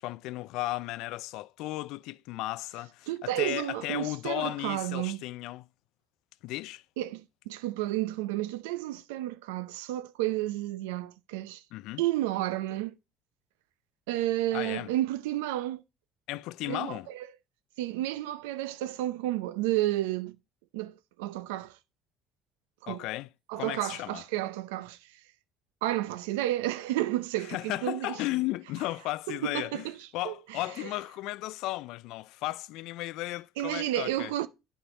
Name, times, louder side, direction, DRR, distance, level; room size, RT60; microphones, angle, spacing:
voice 1, 0.0-5.7 6.4-6.8 11.7-12.0 14.5-14.9 16.3-17.1 22.9-23.3 23.6-24.2 27.4-34.3, left 18 dB, 75° left, 0.3 m, -35 dB
voice 2, 3.1-5.2 7.0-11.6 12.0-12.9 14.1-15.8 16.7-17.2 17.8-20.4 20.7-21.8 22.8-23.0 23.5-25.0 25.8-28.2 29.3-30.0 30.2-30.6 33.6-34.5, right 15 dB, 90° right, 0.6 m, -31 dB
9.7 x 5.7 x 4.1 m
supercardioid pair, 80°, 0 cm